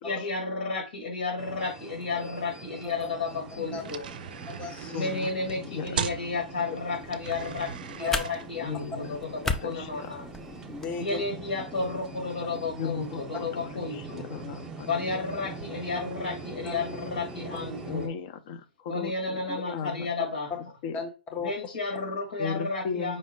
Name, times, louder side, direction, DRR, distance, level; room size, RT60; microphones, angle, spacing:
voice 1, 0.0-4.1 4.9-10.3 11.0-14.2 14.9-18.1 18.9-20.5 21.4-23.2, left 3 dB, 85° left, 2.0 m, -32 dB
sound 1, 1.4-18.1, right 2 dB, 15° right, 0.8 m, -43 dB
sound 2, 2.9-17.9, right 8 dB, 70° right, 0.5 m, -43 dB
voice 2, 3.6-3.9 4.9-5.3 5.6-6.0 8.6-9.3 9.6-10.1 12.8-13.2 13.5-15.2 17.8-20.1 20.8-21.0 22.4-23.2, left 6 dB, 50° left, 0.7 m, -36 dB
voice 3, 4.5-5.1 8.0-8.2 10.6-11.2 14.9-15.0 16.0-16.1 16.6-16.8 19.5-19.8 20.2-20.3 20.9-21.5, left 5 dB, 25° left, 0.8 m, -36 dB
sound 3, 7.0-11.0, left 3 dB, 10° left, 0.5 m, -36 dB
5.5 x 2.0 x 4.6 m
hypercardioid pair, 125°, 5 cm